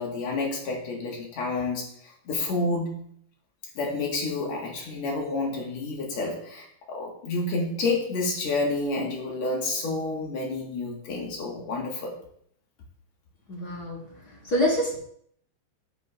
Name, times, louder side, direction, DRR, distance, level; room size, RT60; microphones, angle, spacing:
voice 1, 0.0-1.9 2.3-3.0 3.8-12.2, left 3 dB, 65° left, -1 dB, 2.7 m, -29 dB
voice 2, 13.5-14.0 14.4-15.0, left 1 dB, 45° left, -3 dB, 1.4 m, -25 dB
7.9 x 7.8 x 2.4 m, 0.65 s
omnidirectional pair, 3.3 m